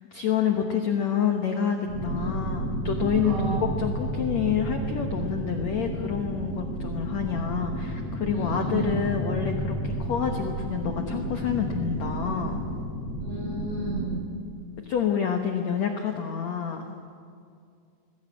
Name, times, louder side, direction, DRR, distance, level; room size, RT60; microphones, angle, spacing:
voice 1, 0.1-12.6 14.8-16.9, left 8 dB, 80° left, 4 dB, 1.6 m, -28 dB
sound 1, 1.9-14.1, right 1 dB, 60° right, 8.0 m, -31 dB
voice 2, 3.2-3.6 8.3-8.9 13.2-14.2, right 3 dB, 75° right, -4 dB, 10.5 m, -32 dB
21.0 x 16.0 x 8.5 m, 2.3 s
omnidirectional pair, 4.9 m